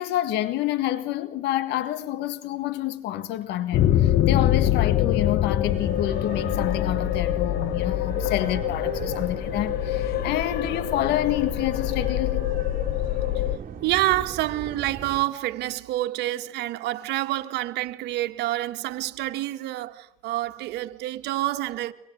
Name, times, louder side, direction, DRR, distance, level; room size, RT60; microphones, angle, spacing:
voice 1, 0.0-12.5, left 13 dB, 85° left, 1.7 m, -28 dB
sound 1, 3.7-13.6, left 13 dB, 70° left, 1.2 m, -25 dB
sound 2, 5.6-15.2, right 8 dB, 50° right, 3.7 m, -37 dB
voice 2, 13.8-21.9, right 16 dB, 85° right, 1.7 m, -27 dB
25.5 x 25.0 x 9.4 m
cardioid pair, 110°, 17 cm